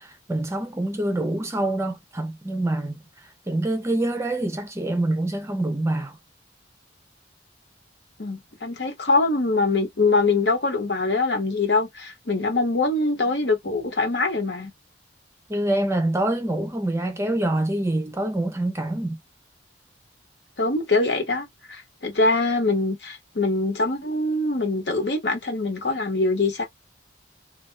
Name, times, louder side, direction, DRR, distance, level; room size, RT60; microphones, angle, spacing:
voice 1, 0.0-3.0 3.5-6.1 15.5-19.2, right 1 dB, 15° right, 0.5 m, -25 dB
voice 2, 8.2-14.7 20.6-26.6, left 3 dB, 65° left, 1.1 m, -23 dB
2.7 x 2.3 x 3.2 m
head